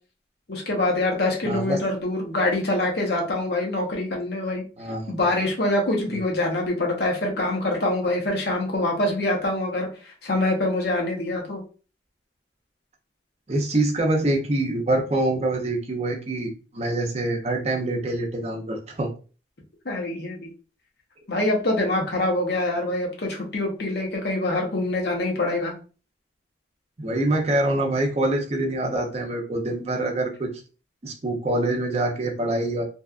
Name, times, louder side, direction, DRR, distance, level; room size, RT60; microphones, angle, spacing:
voice 1, 0.5-4.7 5.1-11.6 19.8-20.5 21.3-25.7, left 2 dB, 60° left, 0 dB, 0.8 m, -25 dB
voice 2, 1.4-1.8 4.8-5.3 6.1-6.2 13.5-19.1 27.0-30.6 31.0-32.8, right 1 dB, 35° right, 1 dB, 0.5 m, -25 dB
2.7 x 2.3 x 2.4 m, 0.36 s
head